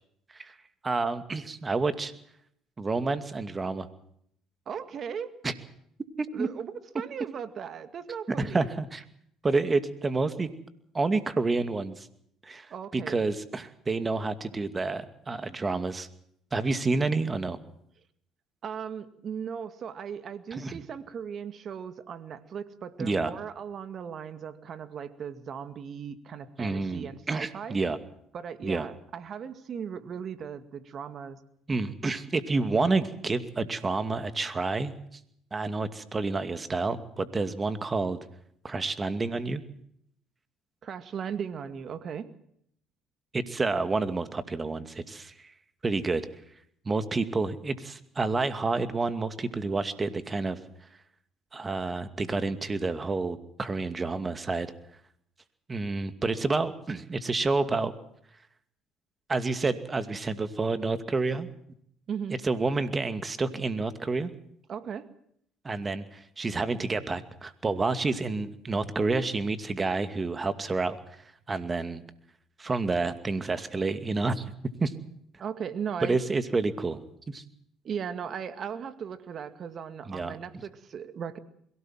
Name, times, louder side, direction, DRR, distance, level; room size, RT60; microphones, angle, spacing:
voice 1, 0.8-2.1 2.8-3.9 5.4-5.5 6.2-6.5 8.4-9.0 9.4-10.5 10.9-12.1 12.5-12.7 12.9-16.1 16.5-17.6 20.5-20.8 23.0-23.3 26.6-28.0 28.6-28.9 31.7-34.9 35.5-38.2 38.6-39.6 43.3-45.3 45.8-46.2 46.9-50.6 51.5-54.7 55.7-57.9 59.3-61.5 62.4-64.3 65.6-71.0 71.5-72.0 72.6-74.5 74.8-74.9 76.0-77.0 77.3-77.4 80.1-80.4, right 3 dB, 25° right, 11 dB, 2.4 m, -29 dB
voice 2, 4.7-5.3 6.3-8.7 12.7-13.3 18.6-27.8 28.3-31.4 40.8-42.3 62.1-62.4 64.7-65.1 75.4-76.2 77.8-81.4, right 7 dB, 50° right, 11 dB, 2.1 m, -37 dB
22.5 x 17.5 x 7.6 m, 0.69 s
supercardioid pair, 75°, 0 cm